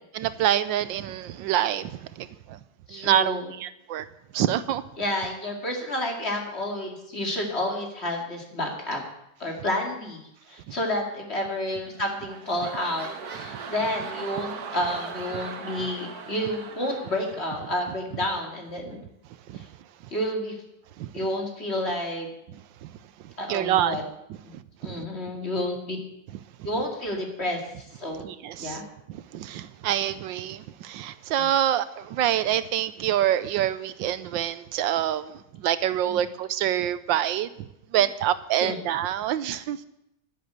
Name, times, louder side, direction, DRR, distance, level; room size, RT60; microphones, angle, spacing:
voice 1, 0.1-2.6 2.9-4.0 4.3-4.8 19.5-19.7 21.0-21.1 23.5-24.0 24.8-25.1 28.2-28.8 29.1-35.3 35.6-37.5 37.9-39.8, right 11 dB, 80° right, 14 dB, 1.4 m, -26 dB
voice 2, 2.9-3.5 5.0-9.0 9.4-19.0 19.6-19.7 20.1-20.6 21.1-22.3 23.4-24.0 24.4-24.5 24.8-26.0 26.6-28.3 28.6-28.8 31.3-31.5 36.1-36.2 38.5-38.8, left 1 dB, 35° left, 1 dB, 2.6 m, -30 dB
sound 1, 11.9-18.4 18.9-19.0, right 5 dB, 55° right, 1.5 m, -39 dB
11.0 x 10.0 x 7.9 m, 0.84 s
omnidirectional pair, 2.0 m